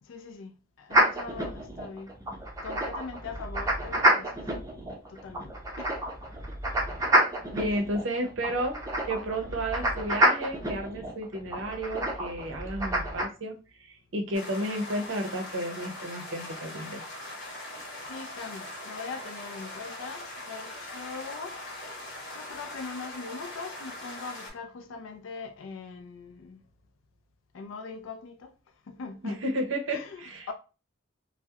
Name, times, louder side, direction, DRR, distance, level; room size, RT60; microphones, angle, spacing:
voice 1, 0.0-2.1 2.6-4.4 5.1-5.9 7.7-7.8 18.0-21.6 22.3-26.6 27.5-28.5 28.9-29.4 29.9-30.5, left 4 dB, 70° left, 0.3 m, -41 dB
sound 1, 0.9-13.2, right 1 dB, 15° right, 0.5 m, -28 dB
voice 2, 7.5-8.8 9.0-13.5 13.9-17.0 29.2-30.5, right 1 dB, 70° right, 0.6 m, -32 dB
sound 2, 14.3-24.5, left 1 dB, 55° left, 0.9 m, -41 dB
2.3 x 2.0 x 2.7 m
head